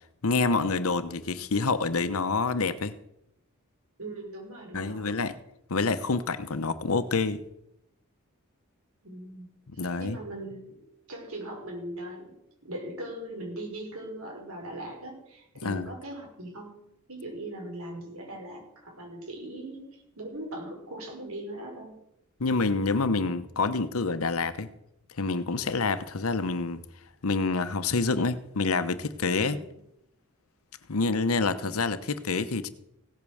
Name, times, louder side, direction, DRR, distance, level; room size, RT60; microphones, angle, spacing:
voice 1, 0.2-2.9 4.7-5.4 5.7-7.4 9.7-10.2 15.6-15.9 22.4-24.7 25.2-26.8 27.2-29.6 30.9-32.7, left 3 dB, 75° left, 0.9 m, -27 dB
voice 2, 4.0-5.1 9.0-9.5 10.0-10.8 11.1-12.3 12.6-16.8 17.1-21.9 29.4-29.8, right 1 dB, 75° right, 5.5 m, -40 dB
16.5 x 8.7 x 6.4 m
head